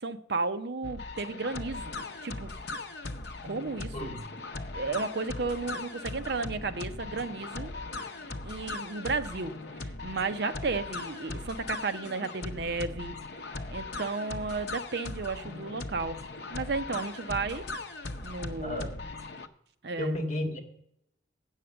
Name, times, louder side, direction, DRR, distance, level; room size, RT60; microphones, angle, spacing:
voice 1, 0.0-1.9 2.2-2.5 3.4-4.2 4.7-7.7 8.4-13.2 13.7-16.2 16.5-17.7 18.2-18.9 19.8-20.2, right 4 dB, 55° right, 0.6 m, -33 dB
sound 1, 0.8-19.5, left 2 dB, 55° left, 0.7 m, -39 dB
voice 2, 18.6-18.9 20.0-20.6, left 1 dB, 35° left, 1.7 m, -32 dB
8.6 x 6.5 x 7.6 m
head